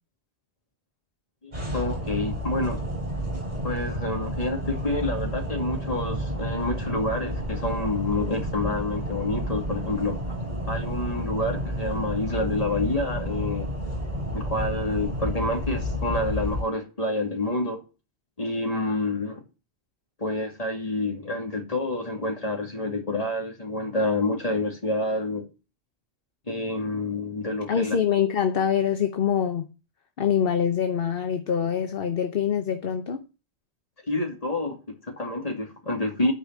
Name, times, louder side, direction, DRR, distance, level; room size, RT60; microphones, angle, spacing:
voice 1, 1.4-2.8 3.6-10.2 10.7-13.7 14.3-17.8 18.4-19.4 20.2-25.5 26.5-28.0 34.1-36.3, left 2 dB, 35° left, 2.5 m, -28 dB
sound 1, 1.5-16.6, equal, 40° right, 4.0 m, -31 dB
voice 2, 27.7-29.7 30.2-33.2, left 8 dB, 60° left, 1.1 m, -24 dB
9.9 x 5.1 x 7.4 m
omnidirectional pair, 1.1 m